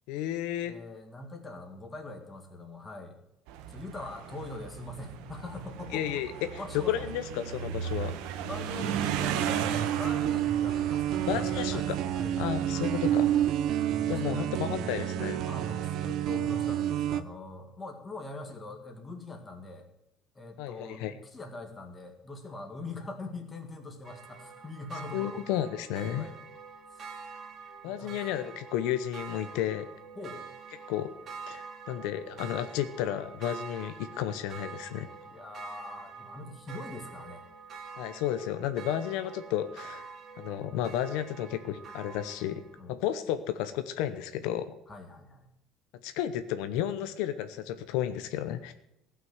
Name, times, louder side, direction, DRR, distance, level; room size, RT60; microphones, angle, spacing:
voice 1, 0.1-0.7 5.9-6.3 6.7-8.1 11.3-12.0 12.4-13.3 14.1-15.4 20.6-21.1 25.1-26.3 27.8-29.9 30.9-31.1 31.5-35.1 38.0-40.1 40.4-44.8 46.0-48.7, left 11 dB, 75° left, 10 dB, 0.9 m, -32 dB
voice 2, 0.6-3.2 3.7-7.1 8.5-12.3 14.0-14.8 15.4-19.9 20.4-25.4 26.2-26.4 26.9-27.0 27.8-28.5 30.2-30.4 35.2-37.5 42.8-43.0 44.9-45.5, left 2 dB, 15° left, 4 dB, 1.8 m, -43 dB
sound 1, 3.5-13.5, right 8 dB, 75° right, 1.3 m, -37 dB
sound 2, 8.8-17.2, right 11 dB, 50° right, 0.8 m, -29 dB
sound 3, 24.0-42.8, right 5 dB, 30° right, 1.6 m, -46 dB
16.5 x 6.1 x 7.9 m, 0.84 s
cardioid pair, 170°, 0 cm